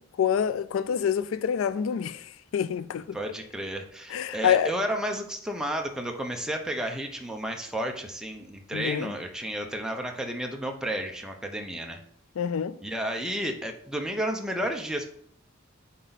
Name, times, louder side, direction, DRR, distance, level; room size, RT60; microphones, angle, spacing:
voice 1, 0.0-3.2 4.1-4.7 8.7-9.1 12.4-12.8, left 8 dB, 85° left, 0.3 m, -27 dB
voice 2, 3.1-12.0 12.8-15.1, right 1 dB, 5° right, 0.8 m, -32 dB
8.2 x 4.6 x 4.1 m
head